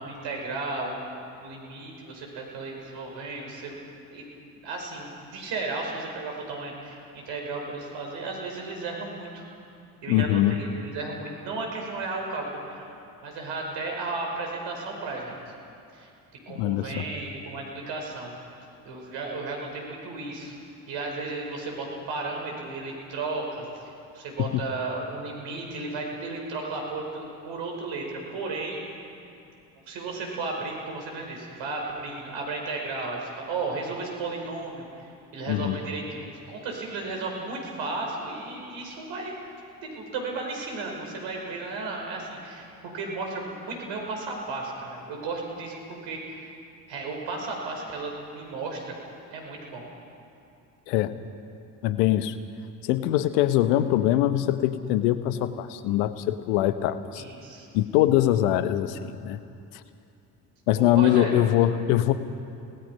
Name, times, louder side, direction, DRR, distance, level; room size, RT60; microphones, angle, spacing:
voice 1, 0.0-3.8 4.1-9.4 10.0-12.9 13.2-15.4 15.9-16.1 16.5-20.6 20.9-23.7 24.1-28.8 29.9-34.9 35.3-39.3 39.8-46.5 46.9-49.0 49.3-49.8 57.1-57.7 60.8-61.4, right 3 dB, 65° right, 1 dB, 5.0 m, -34 dB
voice 2, 10.1-10.6 16.5-17.0 24.4-24.5 35.5-35.8 50.9-51.1 51.8-52.4 52.8-57.2 57.7-59.4 60.7-62.1, left 13 dB, 75° left, 12 dB, 1.1 m, -23 dB
29.0 x 19.0 x 5.4 m, 2.6 s
hypercardioid pair, 50°, 47 cm